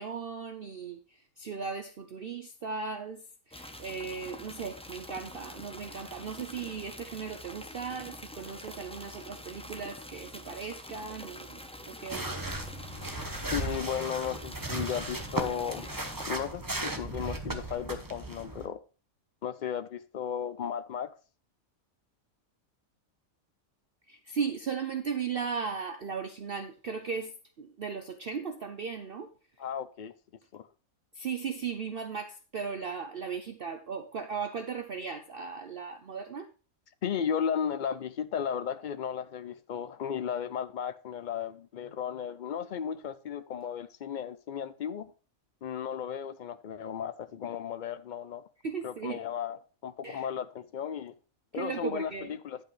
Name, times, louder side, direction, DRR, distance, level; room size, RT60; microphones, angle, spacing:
voice 1, 0.0-11.6 11.9-12.5 24.1-29.3 31.1-36.5 48.6-49.2 50.0-50.3 51.5-52.3, right 6 dB, 50° right, 0.8 m, -37 dB
sound 1, 3.5-16.3, left 1 dB, 5° left, 0.7 m, -46 dB
sound 2, 12.1-18.7, right 2 dB, 15° right, 1.0 m, -36 dB
voice 2, 13.5-15.9 16.3-18.8 19.4-21.1 29.6-30.1 30.5-30.7 37.0-45.1 45.6-48.4 48.8-51.1 51.5-52.6, left 8 dB, 75° left, 0.4 m, -35 dB
10.5 x 8.5 x 3.2 m
omnidirectional pair, 1.5 m